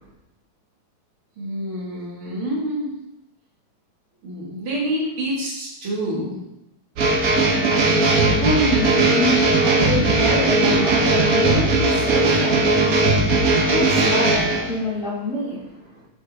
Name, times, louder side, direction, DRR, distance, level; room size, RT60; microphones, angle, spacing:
voice 1, 1.4-2.9 4.2-6.3, equal, 85° right, -5 dB, 2.8 m, -27 dB
sound 1, 7.0-14.7, right 2 dB, 55° right, 1.3 m, -18 dB
voice 2, 8.1-16.0, equal, 40° left, -11 dB, 2.1 m, -27 dB
9.0 x 4.5 x 3.5 m, 0.90 s
omnidirectional pair, 2.2 m